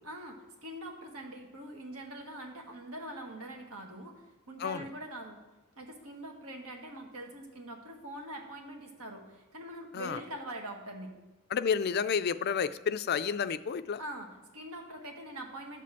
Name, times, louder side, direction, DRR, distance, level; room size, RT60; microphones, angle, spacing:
voice 1, 0.0-5.4 5.8-11.1 14.0-15.8, right 1 dB, 85° right, 2 dB, 1.6 m, -43 dB
voice 2, 11.5-14.0, left 6 dB, 45° left, 13 dB, 0.4 m, -30 dB
12.0 x 4.2 x 7.4 m, 1.1 s
head